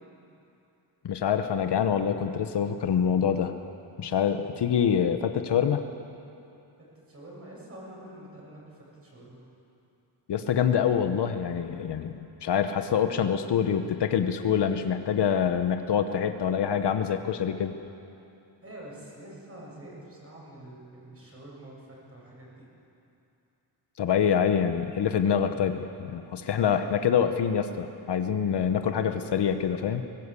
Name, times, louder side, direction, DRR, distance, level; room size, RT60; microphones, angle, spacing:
voice 1, 1.0-3.5 4.0-5.8 10.3-12.1 12.4-17.8 24.0-30.0, left 8 dB, 60° left, 8 dB, 1.0 m, -25 dB
voice 2, 6.8-9.4 18.6-22.6, right 1 dB, 30° right, -4 dB, 7.0 m, -46 dB
21.0 x 18.0 x 8.3 m, 2.8 s
wide cardioid pair, 160°, 47 cm